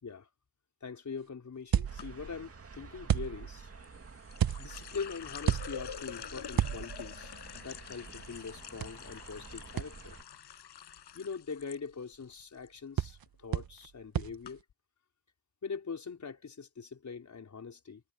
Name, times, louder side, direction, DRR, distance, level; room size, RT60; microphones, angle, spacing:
voice 1, 0.8-3.7 4.6-10.2 11.1-14.6 15.6-18.0, left 5 dB, 45° left, 5.1 m, -42 dB
sound 1, 1.7-2.4 3.1-3.7 4.4-4.9 5.4-6.1 6.5-7.2 8.8-8.9 9.8-9.9 13.0-13.2 13.5-13.9 14.1-14.4, right 10 dB, 55° right, 1.4 m, -31 dB
sound 2, 1.8-10.2, right 4 dB, 35° right, 2.4 m, -51 dB
sound 3, 2.0-2.4 3.8-11.8 12.1-12.7 13.0-13.3 14.0-14.1 14.4-14.5, left 9 dB, 75° left, 6.8 m, -46 dB
cardioid pair, 105°, 41 cm